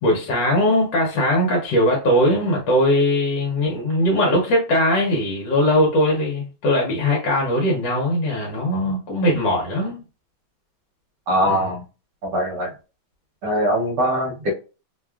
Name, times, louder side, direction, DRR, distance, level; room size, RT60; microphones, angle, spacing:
voice 1, 0.0-10.0 11.4-11.6, left 1 dB, 70° left, -1 dB, 1.4 m, -20 dB
voice 2, 11.3-11.8 12.2-12.7 13.4-14.5, equal, 65° right, -1 dB, 1.2 m, -21 dB
3.2 x 2.3 x 2.3 m, 0.33 s
omnidirectional pair, 2.2 m